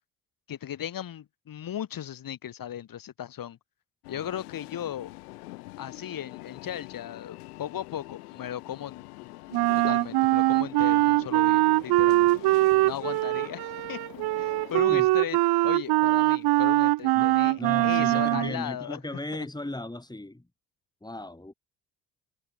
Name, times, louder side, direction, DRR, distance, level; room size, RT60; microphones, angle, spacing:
voice 1, 0.5-3.6 4.1-5.1 5.8-9.3 9.8-12.4 12.9-19.5, left 10 dB, 45° left, 2.5 m, -37 dB
sound 1, 4.0-14.8, left 23 dB, 75° left, 6.7 m, -45 dB
Wind instrument woodwind instrument, 9.5-18.5, right 19 dB, 55° right, 0.9 m, -22 dB
voice 2, 17.6-20.5 21.0-21.5, left 1 dB, 10° left, 5.6 m, -36 dB
hypercardioid pair, 50°, 46 cm